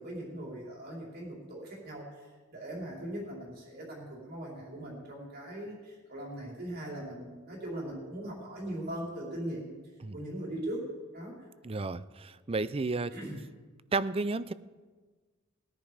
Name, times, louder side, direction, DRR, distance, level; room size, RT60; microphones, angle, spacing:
voice 1, 0.0-9.8 10.1-10.9 11.1-11.5 13.1-13.4, right 1 dB, 50° right, -3 dB, 4.4 m, -40 dB
voice 2, 11.6-13.1 13.9-14.5, right 3 dB, 30° right, 16 dB, 0.5 m, -32 dB
19.5 x 10.5 x 5.0 m, 1.4 s
head